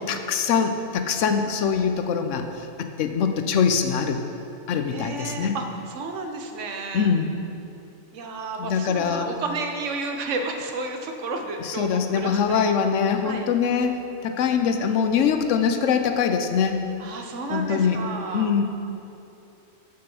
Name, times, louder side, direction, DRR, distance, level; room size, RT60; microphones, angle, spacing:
voice 1, 0.0-2.5 3.0-4.2 4.7-5.6 6.9-7.3 8.6-9.3 11.6-16.9 17.5-18.0 18.3-18.6, left 6 dB, 85° left, 7 dB, 1.0 m, -23 dB
voice 2, 4.9-7.1 8.1-12.9 13.2-13.5 17.0-18.5, right 3 dB, 85° right, 4 dB, 1.1 m, -32 dB
6.5 x 5.9 x 7.0 m, 2.8 s
omnidirectional pair, 1.2 m